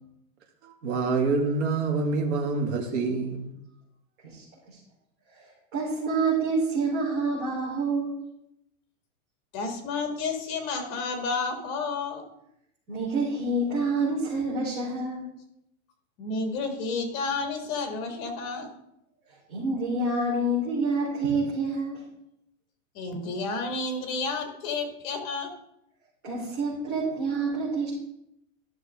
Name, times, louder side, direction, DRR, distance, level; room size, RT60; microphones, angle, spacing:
voice 1, 0.6-3.5, right 3 dB, 55° right, 1 dB, 2.2 m, -26 dB
voice 2, 4.2-4.7 5.7-8.2 12.9-15.3 19.5-22.0 26.2-27.9, right 2 dB, 35° right, -8 dB, 4.1 m, -27 dB
voice 3, 9.5-12.2 16.2-18.7 22.9-25.5, left 4 dB, 35° left, 4 dB, 2.0 m, -31 dB
13.5 x 6.4 x 3.7 m, 0.80 s
supercardioid pair, 175°, 40 cm